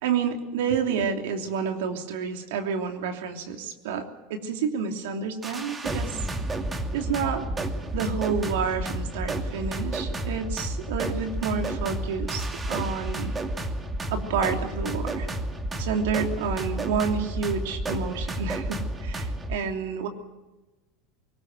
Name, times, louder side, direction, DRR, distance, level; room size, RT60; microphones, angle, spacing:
voice 1, 0.0-6.2 6.9-7.4 7.9-13.3 14.1-15.3 15.8-20.1, right 6 dB, 75° right, 4 dB, 3.1 m, -29 dB
sound 1, 5.4-19.6, right 1 dB, 20° right, 2.6 m, -31 dB
22.0 x 19.5 x 7.9 m, 1.1 s
hypercardioid pair, 90°, 0 cm